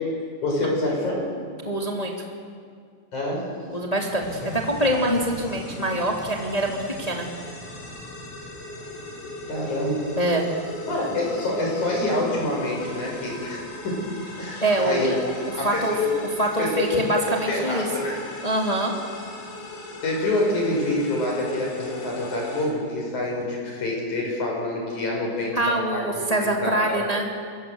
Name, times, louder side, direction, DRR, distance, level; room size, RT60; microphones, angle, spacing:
voice 1, 0.4-1.3 3.1-3.5 9.5-10.1 10.9-14.0 14.4-15.1 15.6-16.1 16.6-16.9 17.3-18.2 20.0-27.1, left 2 dB, 35° left, -1 dB, 7.7 m, -26 dB
voice 2, 1.6-2.1 3.7-7.3 10.2-10.4 14.6-15.3 15.6-15.9 16.4-17.9 18.4-18.9 25.5-27.2, right 1 dB, 15° left, 0 dB, 1.2 m, -24 dB
sound 1, 4.2-22.6, left 1 dB, 80° left, 8.0 m, -38 dB
28.0 x 23.0 x 8.1 m, 2.1 s
omnidirectional pair, 6.0 m